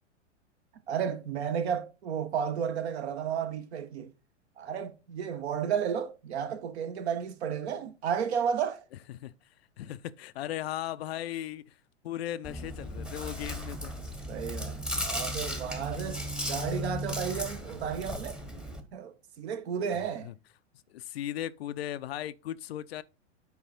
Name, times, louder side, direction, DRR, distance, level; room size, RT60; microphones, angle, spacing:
voice 1, 0.9-4.1 4.6-8.8 14.3-16.2 16.5-18.4 18.9-20.3, right 7 dB, 60° right, 1.2 m, -32 dB
voice 2, 9.8-11.7 12.0-13.9 19.9-20.0 20.2-20.3 20.9-23.0, left 12 dB, 55° left, 0.5 m, -37 dB
Chewing mastication, 12.4-18.8, equal, ahead, 1.0 m, -36 dB
8.2 x 4.7 x 4.2 m
figure-of-eight pair, 95°, 37 cm